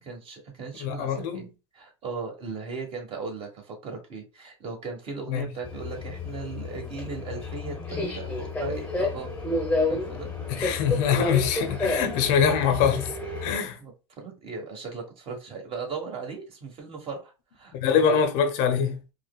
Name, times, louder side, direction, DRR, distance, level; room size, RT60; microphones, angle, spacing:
voice 1, 0.0-1.5 1.7-9.3 9.9-10.3 13.8-18.2, right 4 dB, 35° right, 1.3 m, -37 dB
voice 2, 0.8-1.4 5.3-5.5 10.5-13.1 13.4-13.8 17.7-19.0, left 7 dB, 55° left, 0.7 m, -24 dB
Subway metro underground, 5.6-13.6, left 2 dB, 10° left, 0.8 m, -30 dB
4.7 x 2.1 x 2.3 m
hypercardioid pair, 110°, 16 cm